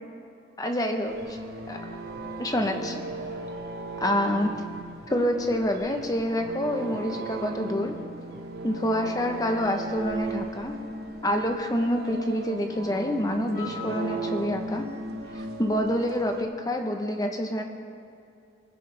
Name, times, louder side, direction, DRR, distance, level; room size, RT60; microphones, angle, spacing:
voice 1, 0.6-1.2 1.7-1.8 2.4-3.0 4.0-4.5 5.1-8.0 8.6-10.7 11.2-14.9 15.3-17.6, equal, 20° left, 4 dB, 1.0 m, -27 dB
sound 1, 1.0-16.4, right 2 dB, 65° right, 1.2 m, -36 dB
19.5 x 11.0 x 3.5 m, 2.5 s
head